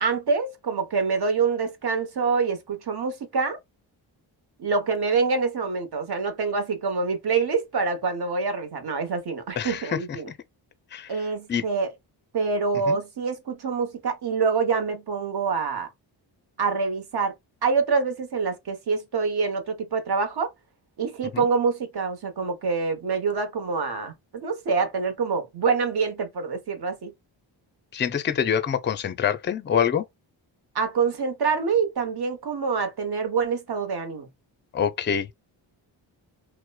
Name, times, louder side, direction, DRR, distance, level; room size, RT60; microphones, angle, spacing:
voice 1, 0.0-3.6 4.6-10.3 11.1-11.9 12.3-15.9 16.6-17.3 17.6-20.5 21.0-27.1 30.7-34.3, right 5 dB, 50° right, 1.0 m, -26 dB
voice 2, 9.6-10.4 10.9-11.1 11.5-11.6 12.9-13.0 21.3-21.5 27.9-30.1 34.7-35.3, left 8 dB, 25° left, 0.4 m, -26 dB
2.9 x 2.1 x 2.2 m
cardioid pair, 55°, 48 cm